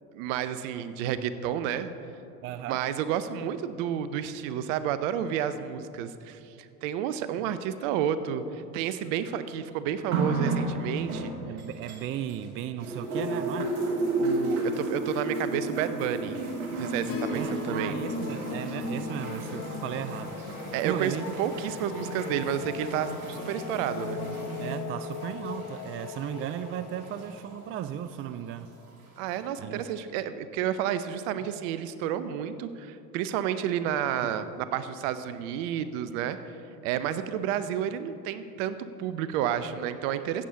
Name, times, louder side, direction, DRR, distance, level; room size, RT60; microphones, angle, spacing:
voice 1, 0.1-1.9 2.7-11.3 14.2-16.4 16.7-18.0 20.7-21.1 21.4-24.2 29.2-36.4 36.8-40.4, right 9 dB, 60° right, 13 dB, 0.7 m, -31 dB
voice 2, 2.4-2.8 7.4-7.5 11.4-13.8 17.4-20.4 20.8-21.3 24.6-28.7 29.6-29.9, right 10 dB, 30° right, 13 dB, 0.4 m, -36 dB
sound 1, 10.1-12.5 12.8-27.5 28.4-28.5, right 2 dB, 80° right, 1.5 m, -33 dB
Acoustic guitar / Strum, 17.0-21.6 23.5-23.6, left 4 dB, 65° left, 1.9 m, -39 dB
sound 2, 17.0-28.9, left 10 dB, 45° left, 0.7 m, -41 dB
14.5 x 8.7 x 3.8 m, 2.7 s
figure-of-eight pair, 60°, 43 cm